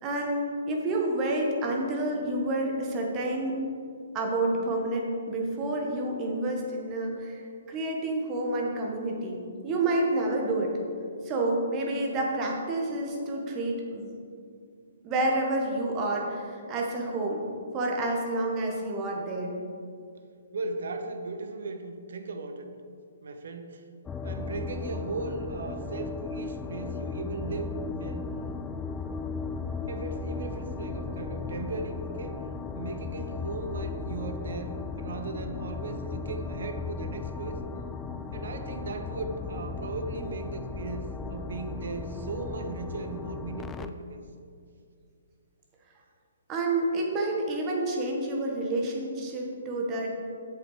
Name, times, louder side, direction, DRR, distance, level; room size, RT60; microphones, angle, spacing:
voice 1, 0.0-3.6 4.1-10.7 11.2-14.1 15.0-17.4 17.7-19.5 46.5-50.1, right 2 dB, 25° right, 0 dB, 1.7 m, -29 dB
voice 2, 20.5-22.7 23.2-23.8 24.2-28.3 29.9-32.4 32.7-37.6 38.3-44.2, right 3 dB, 60° right, 6 dB, 0.9 m, -37 dB
sound 1, 24.1-43.9, left 4 dB, 15° left, 0.4 m, -36 dB
8.1 x 7.1 x 5.2 m, 2.3 s
figure-of-eight pair, 130°, 0 cm